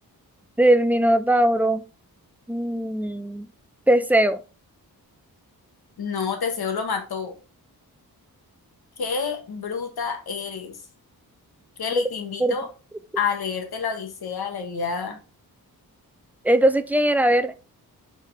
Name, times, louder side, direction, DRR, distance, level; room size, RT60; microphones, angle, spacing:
voice 1, 0.6-1.8 2.5-3.5 3.9-4.4 12.4-12.6 16.4-17.6, right 1 dB, 5° right, 11 dB, 0.3 m, -20 dB
voice 2, 6.0-7.3 9.0-10.8 11.8-12.7 13.1-15.2, left 6 dB, 80° left, 4 dB, 1.5 m, -28 dB
7.4 x 4.1 x 3.4 m, 0.33 s
wide cardioid pair, 180°, 37 cm